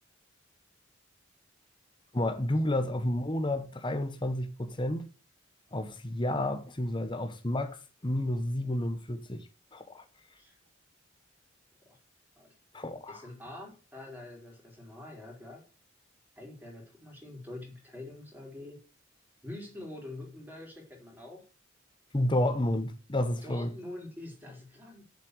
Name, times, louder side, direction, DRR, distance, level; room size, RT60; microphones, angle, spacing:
voice 1, 2.1-5.1 5.7-9.4 9.7-10.0 12.7-13.2 22.1-23.7, left 1 dB, 25° left, 1.1 m, -31 dB
voice 2, 13.1-15.6 16.4-18.8 19.4-21.4 23.4-25.0, left 1 dB, 10° right, 4.0 m, -45 dB
7.6 x 7.5 x 8.0 m
head